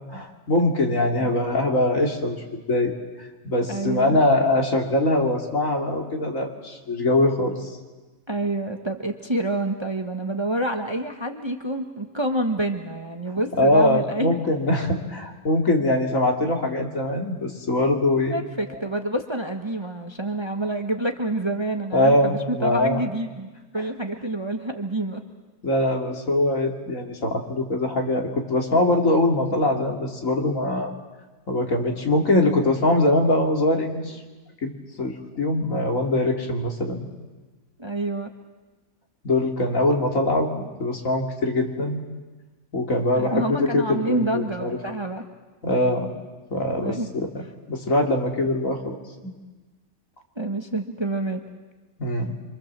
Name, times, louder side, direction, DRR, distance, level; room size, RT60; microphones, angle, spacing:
voice 1, 0.1-2.4 2.7-2.9 3.2-7.7 13.6-18.4 21.9-23.0 25.6-30.9 31.5-34.2 34.6-34.7 35.0-37.1 39.2-42.0 42.7-44.8 45.6-46.1 46.5-47.3 47.7-49.0 49.2-49.3 52.0-52.3, left 1 dB, 65° left, 1 dB, 3.1 m, -22 dB
voice 2, 3.7-4.2 8.3-14.3 18.3-25.2 37.8-38.3 43.1-45.2 46.8-47.1 50.4-51.4, right 1 dB, 20° right, 4 dB, 1.3 m, -28 dB
26.0 x 25.0 x 7.5 m, 1.2 s
omnidirectional pair, 1.5 m